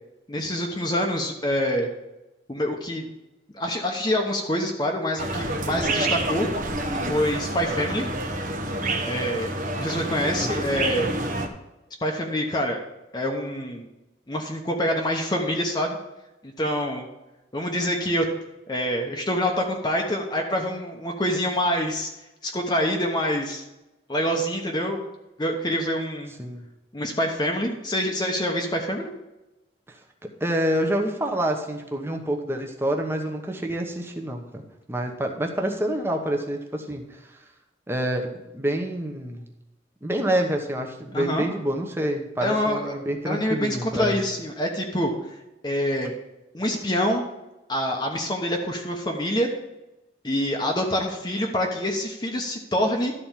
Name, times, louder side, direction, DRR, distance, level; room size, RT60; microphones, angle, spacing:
voice 1, 0.3-1.9 2.5-3.1 3.5-6.5 7.1-8.1 9.0-11.1 12.0-12.8 13.1-13.9 14.3-16.0 16.4-17.1 17.5-18.3 18.7-22.1 22.4-23.6 24.1-25.0 25.4-26.3 26.9-29.1 41.1-41.5 42.4-43.0 43.3-45.4 45.6-46.1 46.5-47.2 47.7-49.5 50.2-53.1, equal, 25° left, 2 dB, 0.9 m, -26 dB
sound 1, 5.2-11.5, right 2 dB, 45° right, 1.0 m, -28 dB
voice 2, 29.9-34.6 34.9-37.4 37.9-39.5 40.0-44.2, right 1 dB, 15° right, 2 dB, 1.1 m, -27 dB
12.5 x 4.3 x 7.4 m, 0.98 s
head